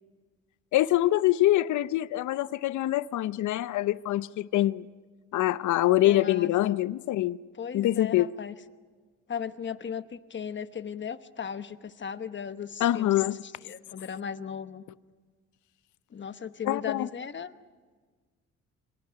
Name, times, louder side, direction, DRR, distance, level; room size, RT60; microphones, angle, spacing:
voice 1, 0.7-4.9 5.3-7.4 7.7-8.3 12.8-13.4 16.7-17.1, left 15 dB, 75° left, 0.7 m, -25 dB
voice 2, 6.0-6.8 7.6-8.5 9.3-14.8 16.1-17.5, left 7 dB, 40° left, 1.1 m, -37 dB
27.5 x 25.5 x 5.8 m
cardioid pair, 90°, 30 cm